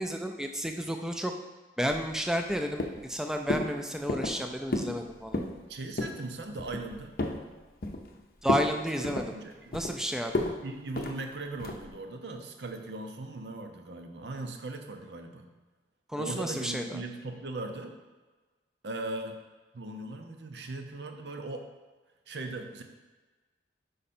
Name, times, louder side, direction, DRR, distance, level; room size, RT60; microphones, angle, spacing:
voice 1, 0.0-1.3 1.8-5.4 8.4-9.3 9.7-10.5 16.1-17.0, equal, 5° right, 4 dB, 0.4 m, -31 dB
Walking on wooden floor, 1.9-2.5 2.8-3.1 3.5-3.7 4.1-4.4 4.7-5.0 5.2-5.6 6.0-6.2 6.6-7.4 7.8-8.2 8.5-8.7 9.0-9.9 10.3-10.6 11.0-11.2 11.6-11.9, left 2 dB, 55° left, 0.6 m, -32 dB
voice 2, 5.7-7.1 9.0-9.7 10.6-15.5 16.2-18.0 18.8-19.4 19.7-21.7 22.3-22.8, right 2 dB, 75° right, 5 dB, 0.7 m, -39 dB
5.5 x 5.0 x 4.2 m, 1.3 s
head